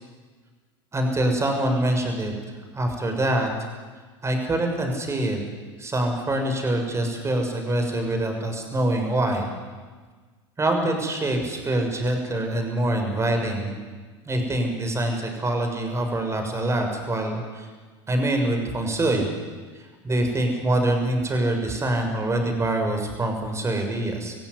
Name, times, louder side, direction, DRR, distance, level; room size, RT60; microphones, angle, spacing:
voice 1, 0.9-2.3 2.7-3.5 4.2-5.4 5.8-9.5 10.6-13.8 14.2-17.7 18.1-19.3 20.0-24.3, right 1 dB, 20° right, 4 dB, 6.6 m, -25 dB
25.5 x 16.0 x 9.9 m, 1.4 s
hypercardioid pair, 90°, 14 cm